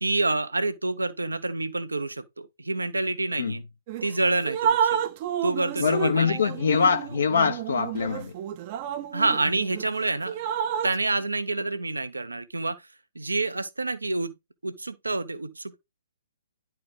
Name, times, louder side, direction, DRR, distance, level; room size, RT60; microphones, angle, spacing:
voice 1, 0.0-3.6 4.0-5.0 5.4-6.4 9.1-10.4 10.8-12.8 13.1-14.3 14.6-15.8, right 2 dB, 75° right, 1.1 m, -28 dB
Drip, 3.9-4.1 4.4-9.8 10.3-11.0, right 9 dB, 35° right, 0.8 m, -30 dB
voice 2, 5.8-8.3, left 5 dB, 60° left, 1.0 m, -23 dB
10.5 x 4.6 x 3.9 m
figure-of-eight pair, 125°, 0 cm